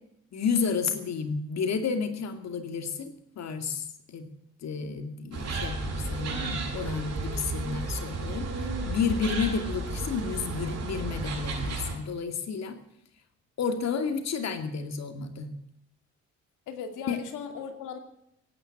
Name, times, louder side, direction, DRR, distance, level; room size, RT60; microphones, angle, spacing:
voice 1, 0.3-4.3 4.6-12.8 13.6-15.6 17.1-17.2, left 5 dB, 60° left, 8 dB, 2.5 m, -31 dB
sound 1, 5.3-11.9, right 3 dB, 55° right, 6.6 m, -33 dB
voice 2, 16.7-18.0, left 6 dB, 85° left, 6 dB, 2.6 m, -38 dB
16.5 x 9.5 x 9.1 m, 0.76 s
cardioid pair, 90°, 30 cm